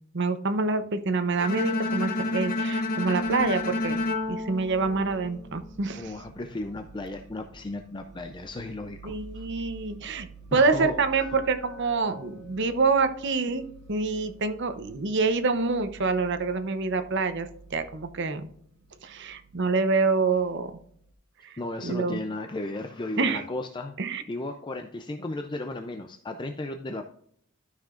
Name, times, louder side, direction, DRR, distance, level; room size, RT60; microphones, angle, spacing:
voice 1, 0.1-4.0 4.3-6.2 9.0-18.5 19.0-20.7 21.4-22.2 23.2-23.4 24.0-24.2, right 4 dB, 55° right, 9 dB, 0.8 m, -26 dB
Bowed string instrument, 1.4-5.5, left 2 dB, 40° left, 1.0 m, -30 dB
sound 1, 3.2-21.1, right 3 dB, 85° right, 1.1 m, -50 dB
voice 2, 6.0-9.5 10.5-11.3 21.6-24.0 24.3-27.1, left 2 dB, 20° left, 5 dB, 0.4 m, -35 dB
Glass, 11.2-15.3, left 4 dB, 5° left, 1.9 m, -50 dB
13.0 x 5.8 x 2.5 m, 0.67 s
head